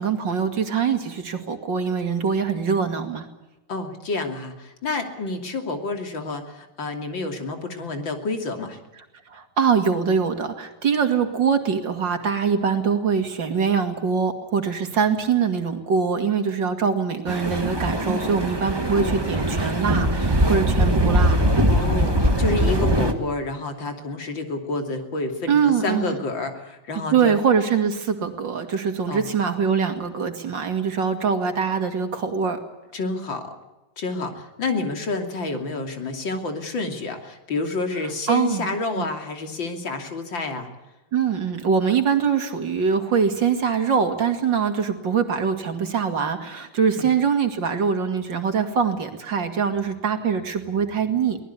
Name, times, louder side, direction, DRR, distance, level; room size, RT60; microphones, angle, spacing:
voice 1, 0.0-3.3 9.3-21.4 25.5-26.2 27.1-32.6 38.3-38.7 39.0-39.1 41.1-51.4, right 6 dB, 65° right, 6 dB, 3.0 m, -23 dB
voice 2, 3.7-8.8 17.9-18.3 19.0-19.2 21.7-27.3 29.1-29.3 32.9-33.5 34.0-40.7 47.0-47.1, left 3 dB, 70° left, 5 dB, 3.6 m, -29 dB
sound 1, 17.3-23.1, right 1 dB, 15° right, 1.7 m, -21 dB
23.5 x 19.0 x 8.3 m, 1.0 s
omnidirectional pair, 2.1 m